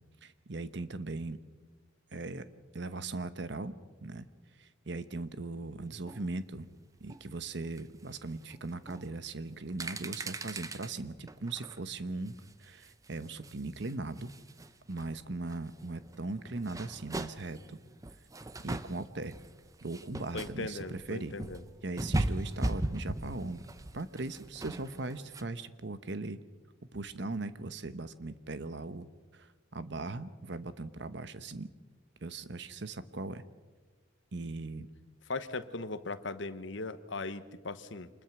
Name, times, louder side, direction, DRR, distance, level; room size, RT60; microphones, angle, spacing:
voice 1, 0.2-1.4 2.1-2.5 2.7-3.7 4.0-4.3 4.6-6.7 7.0-14.3 14.9-17.8 18.6-19.3 19.8-21.3 21.8-23.6 23.9-26.4 26.9-29.1 29.3-31.7 32.2-33.4 34.3-34.9, right 2 dB, 60° right, 13 dB, 1.0 m, -39 dB
sound 1, 6.1-6.3 7.1-7.2 7.6-7.8 8.5-8.6 8.9-9.1 9.6-10.9 11.3-11.8 12.3-14.7 15.0-25.4, right 1 dB, 15° right, 0.7 m, -38 dB
voice 2, 20.3-21.6 35.3-38.1, left 3 dB, 70° left, 11 dB, 1.1 m, -38 dB
26.0 x 21.0 x 6.0 m, 1.3 s
head